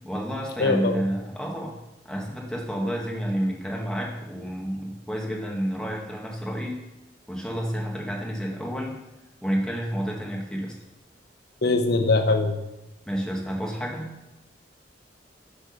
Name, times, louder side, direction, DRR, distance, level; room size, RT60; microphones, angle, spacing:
voice 1, 0.0-1.7 2.0-6.8 7.3-8.9 9.4-10.7 13.1-14.1, equal, 5° left, -2 dB, 1.5 m, -30 dB
voice 2, 0.6-1.0 11.6-12.6, left 3 dB, 60° left, 5 dB, 0.8 m, -22 dB
8.2 x 4.9 x 5.2 m, 0.94 s
head